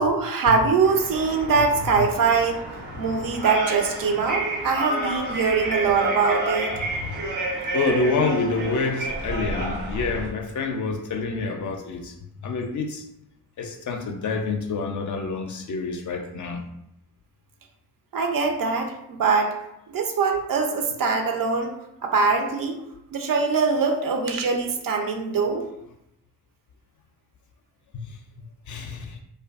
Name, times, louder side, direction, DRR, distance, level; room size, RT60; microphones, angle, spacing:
voice 1, 0.0-2.6 3.0-6.8 18.1-19.5 19.9-21.7 22.0-22.8 23.1-25.6, right 4 dB, 55° right, 3 dB, 0.5 m, -23 dB
sound 1, 0.8-10.3, right 2 dB, 85° right, 1.0 m, -30 dB
voice 2, 6.9-7.3 7.7-12.1 12.4-13.0 13.6-16.6 27.9-29.2, left 3 dB, 50° left, 4 dB, 0.5 m, -28 dB
2.5 x 2.3 x 2.4 m, 0.82 s
supercardioid pair, 50°, 40 cm